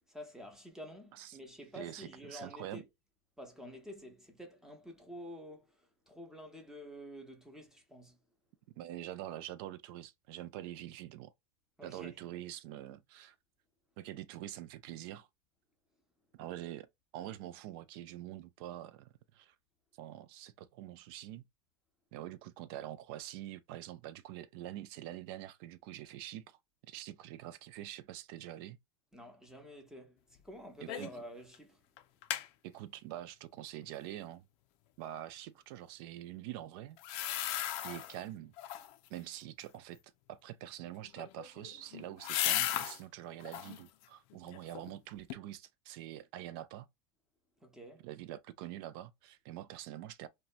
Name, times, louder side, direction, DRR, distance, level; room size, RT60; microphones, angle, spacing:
voice 1, 0.1-2.9 3.4-5.7 6.1-8.2 11.8-12.2 29.1-31.8 47.6-48.0, equal, 5° right, 0.7 m, -49 dB
voice 2, 1.7-2.8 8.8-11.3 11.8-13.3 14.0-15.3 16.3-16.9 17.1-19.5 20.0-21.4 22.1-26.6 26.9-28.8 30.8-31.1 32.6-34.4 35.0-37.5 37.8-38.5 39.1-40.0 40.3-46.9 48.0-50.3, right 13 dB, 60° right, 0.4 m, -45 dB
sound 1, 30.9-31.2 31.5-31.6 32.0-32.5 37.0-38.2 38.6-39.1 41.0-43.0 43.4-43.8 44.3-45.0 45.3-45.4, left 13 dB, 55° left, 0.4 m, -36 dB
2.7 x 2.2 x 2.5 m
supercardioid pair, 115°, 13 cm